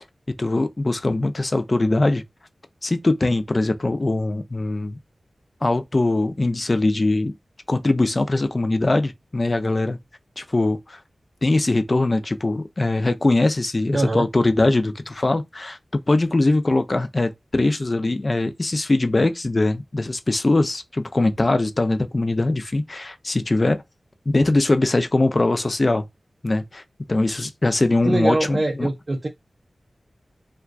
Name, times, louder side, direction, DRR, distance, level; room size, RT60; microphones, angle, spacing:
voice 1, 0.4-2.2 2.8-5.0 5.6-7.3 7.7-10.0 10.4-11.0 11.4-15.8 16.1-23.8 24.3-26.0 26.4-26.8 27.1-28.9, left 2 dB, 35° left, 0.4 m, -21 dB
voice 2, 13.9-14.3 28.0-29.3, right 2 dB, 40° right, 0.4 m, -23 dB
2.3 x 2.2 x 2.4 m
wide cardioid pair, 85°, 0 cm